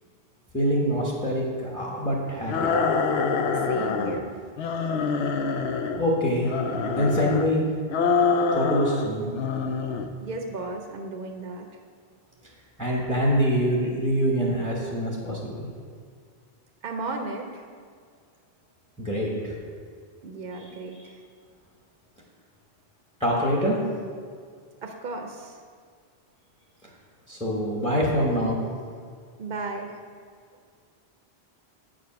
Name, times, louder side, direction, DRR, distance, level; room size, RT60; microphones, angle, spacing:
voice 1, 0.5-2.7 6.0-6.5 6.9-7.6 8.5-9.3 12.8-15.7 19.0-19.5 23.2-23.8 27.3-28.6, equal, 5° left, -3 dB, 1.0 m, -25 dB
sound 1, 2.5-4.2 4.6-6.0 6.4-7.5 7.9-9.1 9.3-10.1, left 4 dB, 75° left, 0.8 m, -25 dB
voice 2, 3.5-4.3 10.2-11.7 16.8-17.6 20.2-21.2 24.8-25.6 29.4-29.9, right 3 dB, 60° right, 3 dB, 0.8 m, -35 dB
7.8 x 5.0 x 5.9 m, 2.1 s
omnidirectional pair, 1.1 m